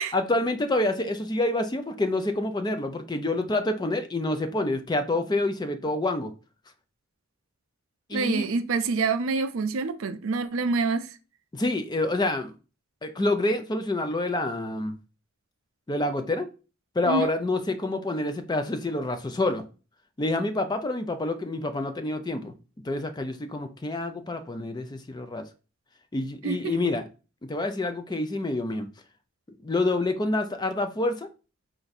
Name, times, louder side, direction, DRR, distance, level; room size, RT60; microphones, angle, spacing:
voice 1, 0.1-6.3 8.1-8.5 11.5-12.5 13.0-15.0 15.9-16.5 17.0-19.6 20.2-22.5 22.8-25.4 26.1-27.1 27.5-28.9 29.6-31.3, left 2 dB, 20° left, 0.4 m, -27 dB
voice 2, 8.1-11.1 17.0-17.3 26.4-26.7, right 4 dB, 65° right, 0.4 m, -26 dB
4.5 x 2.6 x 4.0 m
head